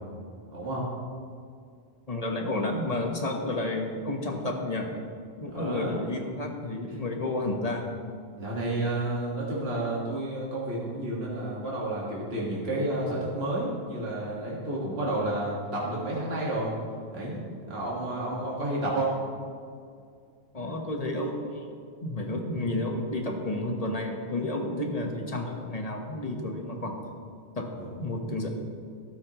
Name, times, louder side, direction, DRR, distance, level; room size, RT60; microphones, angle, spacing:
voice 1, 0.5-0.9 5.5-6.0 8.3-16.7 17.1-17.4 17.7-19.1 27.8-27.9, right 1 dB, 60° right, -5 dB, 2.1 m, -30 dB
voice 2, 2.1-4.9 5.4-7.9 20.5-26.9 27.5-27.7 28.0-28.5, left 2 dB, 35° left, 2 dB, 1.3 m, -31 dB
13.0 x 12.5 x 3.0 m, 2.3 s
omnidirectional pair, 1.2 m